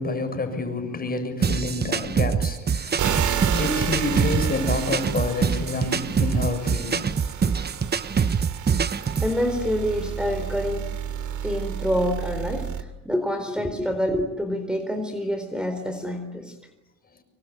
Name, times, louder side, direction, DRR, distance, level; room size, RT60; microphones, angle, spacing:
voice 1, 0.0-7.1, left 2 dB, 30° left, 7.2 m, -28 dB
sound 1, 1.4-9.4, right 6 dB, 35° right, 1.0 m, -25 dB
sound 2, 3.0-12.8, right 8 dB, 75° right, 2.8 m, -31 dB
voice 2, 9.2-10.9 11.4-16.5, equal, 5° right, 4.2 m, -27 dB
26.0 x 23.5 x 9.4 m
cardioid pair, 90°, 30 cm